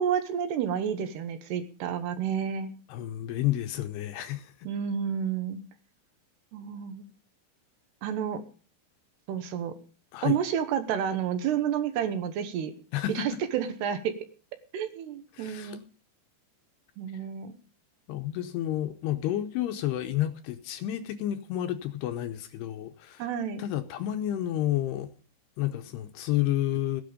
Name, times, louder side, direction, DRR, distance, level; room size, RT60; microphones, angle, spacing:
voice 1, 0.0-2.7 4.6-5.6 6.5-7.0 8.0-8.4 9.3-9.7 10.2-12.7 13.1-14.1 14.7-15.8 17.0-17.6 23.2-23.6, right 8 dB, 75° right, 3.0 m, -30 dB
voice 2, 2.9-4.5 10.1-10.4 12.9-13.4 15.3-15.8 18.1-23.3 23.6-25.1 25.6-27.0, left 13 dB, 80° left, 2.6 m, -30 dB
16.0 x 10.5 x 5.0 m
omnidirectional pair, 5.2 m